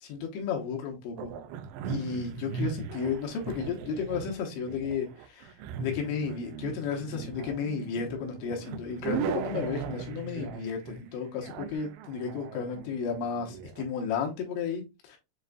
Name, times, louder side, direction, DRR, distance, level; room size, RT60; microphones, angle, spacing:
voice 1, 0.0-1.3 1.9-5.5 5.8-15.2, left 6 dB, 85° left, 3.3 m, -33 dB
sound 1, 1.2-13.9, right 7 dB, 85° right, 2.3 m, -38 dB
7.5 x 2.5 x 2.2 m
omnidirectional pair, 5.0 m